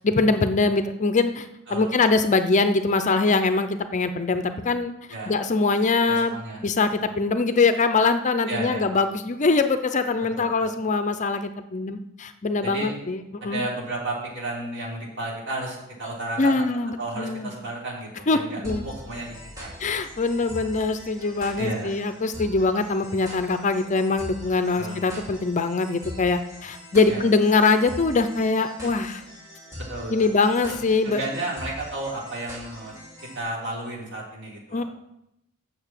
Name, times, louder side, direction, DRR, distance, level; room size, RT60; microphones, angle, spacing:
voice 1, 0.0-4.9 5.3-13.7 16.4-17.5 18.3-18.9 19.8-29.2 30.1-31.2 34.7-34.8, left 3 dB, 35° left, 10 dB, 0.5 m, -23 dB
voice 2, 6.0-6.6 7.0-7.1 8.5-8.9 10.3-10.7 12.6-12.9 13.4-16.6 17.0-19.7 21.6-22.0 24.8-25.0 27.1-27.2 29.8-30.3 30.7-30.8 31.0-32.9 33.3-34.8, right 2 dB, 55° right, -4 dB, 3.4 m, -33 dB
sound 1, 18.6-33.4, left 1 dB, 15° right, 2.9 m, -42 dB
7.0 x 6.5 x 7.4 m, 0.84 s
head